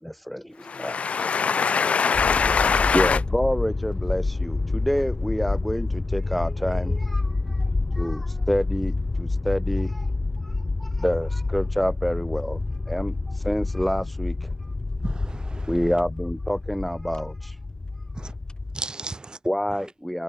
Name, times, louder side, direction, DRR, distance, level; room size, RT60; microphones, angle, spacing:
voice 1, 0.0-1.0 2.9-7.6 7.9-10.1 10.4-10.5 10.8-12.6 12.9-14.7 15.7-17.6 19.5-20.2, equal, ahead, 0.3 m, -28 dB
voice 2, 0.7-3.2, left 6 dB, 85° left, 0.3 m, -22 dB
sound 1, 2.1-18.8, left 3 dB, 40° left, 1.8 m, -28 dB
voice 3, 15.0-16.0 18.1-18.3 18.7-19.4 19.7-19.9, right 3 dB, 40° right, 3.3 m, -36 dB
open air
wide cardioid pair, 75°, 2 cm